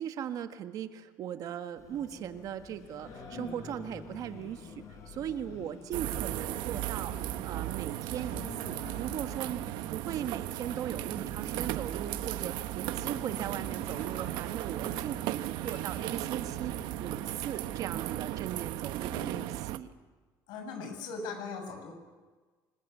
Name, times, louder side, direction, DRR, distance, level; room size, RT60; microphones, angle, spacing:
voice 1, 0.0-19.9, right 10 dB, 50° right, 9 dB, 1.5 m, -39 dB
Singing, 1.8-17.8, left 4 dB, 40° left, 5.4 m, -48 dB
sound 1, 5.9-19.8, right 15 dB, 80° right, 1.0 m, -36 dB
voice 2, 19.0-19.5 20.5-21.9, left 4 dB, 75° left, 5 dB, 7.1 m, -40 dB
26.5 x 20.5 x 9.3 m, 1.4 s
cardioid pair, 160°, 8 cm